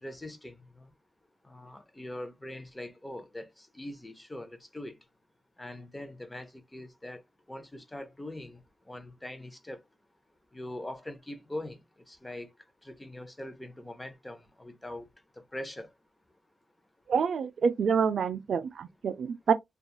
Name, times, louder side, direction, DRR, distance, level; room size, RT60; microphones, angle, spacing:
voice 1, 0.0-0.9 1.5-5.0 5.6-7.2 7.5-8.6 8.9-9.8 10.5-11.8 12.1-12.5 12.8-15.1 15.4-15.9, left 1 dB, 15° left, 0.5 m, -42 dB
voice 2, 17.1-19.5, right 6 dB, 70° right, 0.4 m, -27 dB
2.8 x 2.3 x 2.3 m
wide cardioid pair, 105°, 0 cm